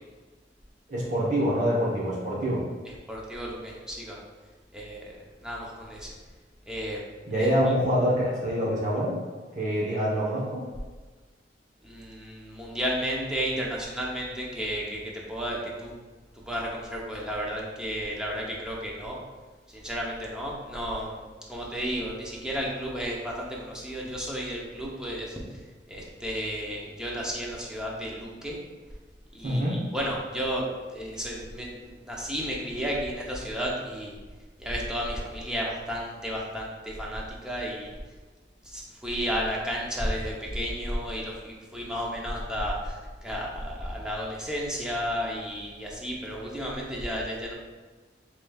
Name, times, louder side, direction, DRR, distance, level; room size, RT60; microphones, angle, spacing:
voice 1, 0.9-2.6 7.3-9.2 9.5-10.6 29.4-29.8, equal, 45° right, -6 dB, 1.0 m, -25 dB
voice 2, 3.1-4.2 4.7-6.1 6.7-7.0 7.4-7.5 11.8-15.9 16.5-19.2 19.7-25.3 25.9-28.5 29.3-30.7 30.9-34.1 34.6-37.9 38.7-43.0 43.2-47.5, equal, 5° right, -4 dB, 0.6 m, -33 dB
4.9 x 3.1 x 2.3 m, 1.3 s
head